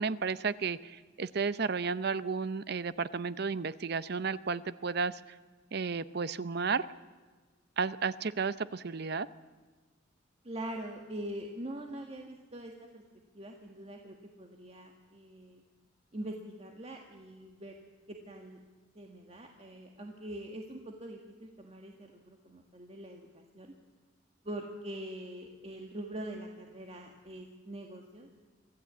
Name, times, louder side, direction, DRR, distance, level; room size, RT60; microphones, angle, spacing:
voice 1, 0.0-5.2 5.7-6.9 7.8-9.3, right 5 dB, 55° right, 15 dB, 0.7 m, -33 dB
voice 2, 10.4-13.0 13.3-15.6 16.1-17.8 18.1-18.6 18.9-23.7 24.4-28.3, right 1 dB, 35° right, 2 dB, 1.7 m, -43 dB
24.5 x 14.5 x 8.3 m, 1.4 s
head